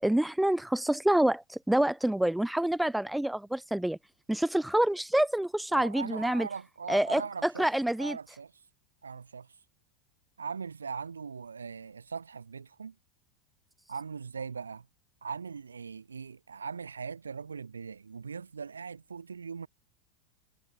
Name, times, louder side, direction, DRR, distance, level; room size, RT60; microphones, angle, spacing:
voice 1, 0.0-4.0 4.3-6.5 6.9-8.2, right 1 dB, 5° right, 0.7 m, -27 dB
voice 2, 5.7-8.5 9.0-9.6 10.4-13.0 13.9-14.9 15.2-19.7, right 5 dB, 75° right, 5.3 m, -40 dB
figure-of-eight pair, 85°, 0 cm